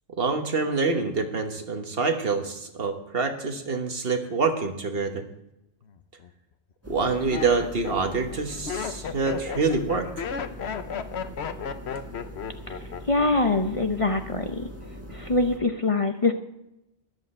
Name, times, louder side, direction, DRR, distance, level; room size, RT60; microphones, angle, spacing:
voice 1, 0.1-5.2 6.9-10.2, right 4 dB, 60° right, 5 dB, 1.5 m, -26 dB
Laughter, 5.9-6.3 6.9-13.6 13.8-14.3, left 7 dB, 70° left, 1.1 m, -34 dB
sound 1, 6.8-15.6, equal, 15° right, 1.6 m, -41 dB
voice 2, 13.1-14.7 15.1-16.3, left 3 dB, 35° left, 6 dB, 0.7 m, -24 dB
13.5 x 11.0 x 4.3 m, 0.88 s
omnidirectional pair, 1.1 m